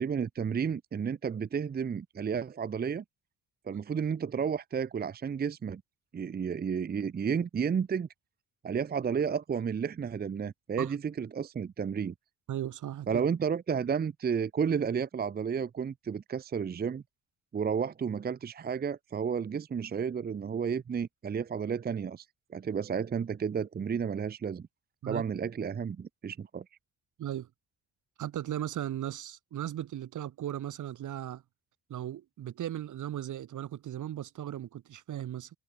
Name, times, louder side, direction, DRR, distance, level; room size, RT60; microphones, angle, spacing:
voice 1, 0.0-3.0 3.7-5.8 6.1-8.1 8.6-12.1 13.1-17.0 17.5-22.2 22.5-24.7 25.1-26.6, right 6 dB, 25° right, 0.8 m, -32 dB
voice 2, 12.5-13.2 25.0-25.2 27.2-27.5 28.2-31.4 31.9-35.5, right 11 dB, 50° right, 1.4 m, -37 dB
cardioid pair, 165°, 38 cm